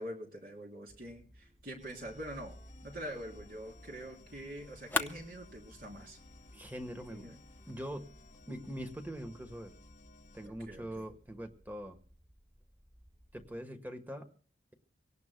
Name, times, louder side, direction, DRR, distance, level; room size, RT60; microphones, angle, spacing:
voice 1, 0.0-2.6 2.8-6.2 7.1-7.4 10.4-11.1, equal, 50° right, 0 dB, 3.6 m, -45 dB
sound 1, 0.9-13.6, equal, 30° right, 5.1 m, -59 dB
sound 2, 1.8-10.5, left 2 dB, 40° left, 1.0 m, -59 dB
sound 3, 2.5-8.5, left 3 dB, 10° left, 0.7 m, -44 dB
voice 2, 6.5-7.3 7.7-8.1 8.5-9.7 10.3-12.0 13.3-14.3, equal, 10° right, 6 dB, 1.3 m, -43 dB
25.0 x 18.0 x 2.2 m, 0.42 s
head